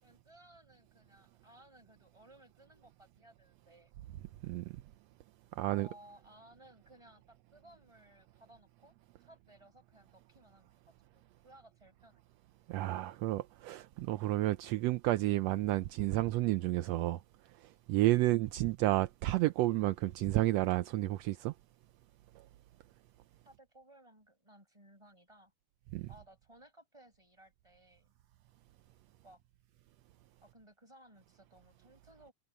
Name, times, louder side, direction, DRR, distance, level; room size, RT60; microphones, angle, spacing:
voice 1, 0.0-3.9 5.6-8.9 9.2-10.7 11.1-12.2 23.4-25.5 26.1-28.1 29.2-29.4 30.4-32.3, right 1 dB, 10° right, 6.2 m, -60 dB
voice 2, 5.6-5.9 12.7-17.2 17.9-21.5 25.9-26.1, right 16 dB, 80° right, 1.6 m, -31 dB
omnidirectional pair, 3.4 m